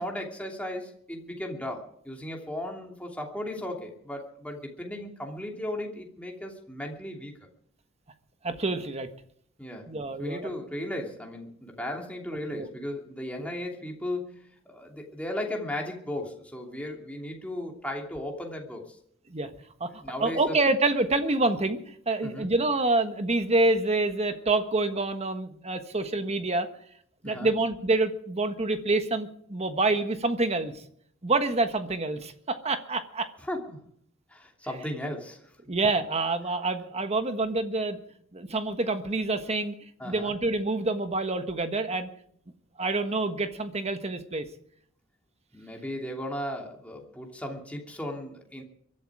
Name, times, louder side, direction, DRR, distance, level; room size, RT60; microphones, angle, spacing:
voice 1, 0.0-7.3 9.6-19.0 20.0-20.6 22.2-22.5 27.2-27.5 33.4-33.8 34.3-35.5 40.0-40.3 45.5-48.6, left 1 dB, 5° left, 1 dB, 2.8 m, -36 dB
voice 2, 8.4-9.1 9.9-10.5 12.5-12.7 13.4-13.5 19.3-19.5 19.8-19.9 20.2-26.7 27.2-30.7 31.2-33.3 35.7-38.0 38.3-39.7 40.0-42.1 42.8-44.4, right 2 dB, 30° right, 8 dB, 1.4 m, -27 dB
23.0 x 12.0 x 4.9 m, 0.65 s
head